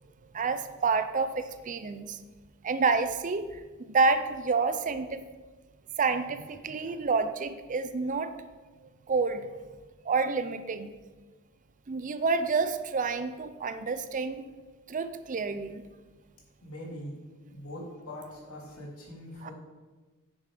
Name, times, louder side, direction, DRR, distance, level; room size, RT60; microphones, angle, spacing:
voice 1, 0.3-2.2 2.6-5.3 6.0-8.3 9.1-9.5 10.0-10.9 11.9-14.4 14.9-15.8 19.4-19.5, right 4 dB, 35° right, 11 dB, 0.5 m, -29 dB
voice 2, 16.6-17.2 17.5-19.5, left 1 dB, 70° left, -3 dB, 3.1 m, -42 dB
9.8 x 6.3 x 5.1 m, 1.3 s
head